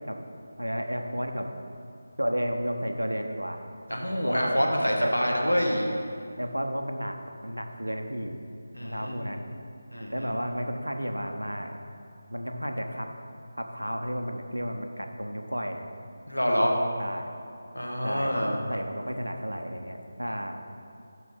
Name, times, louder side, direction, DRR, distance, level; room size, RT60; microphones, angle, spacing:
voice 1, 0.6-1.5 2.2-3.6 4.2-4.6 5.0-5.1 6.4-8.4 8.8-9.5 10.1-11.8 12.3-13.1 13.6-15.9 17.0-17.3 18.0-20.6, equal, 85° right, 5 dB, 0.8 m, -32 dB
voice 2, 3.9-5.9 8.7-9.3 9.9-10.3 16.3-16.8 17.7-18.6, equal, 90° left, 0 dB, 1.4 m, -26 dB
7.4 x 6.0 x 5.2 m, 2.6 s
figure-of-eight pair, 160°, 0 cm